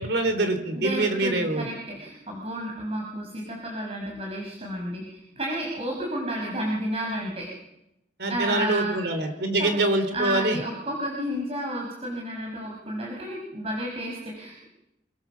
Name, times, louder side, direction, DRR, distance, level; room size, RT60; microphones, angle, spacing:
voice 1, 0.0-1.7 8.2-10.6, right 2 dB, 60° right, 8 dB, 3.7 m, -25 dB
voice 2, 0.8-7.5 8.3-9.0 9.6-9.7 10.1-14.7, right 1 dB, 35° right, -1 dB, 5.6 m, -31 dB
27.0 x 22.5 x 7.2 m, 0.86 s
head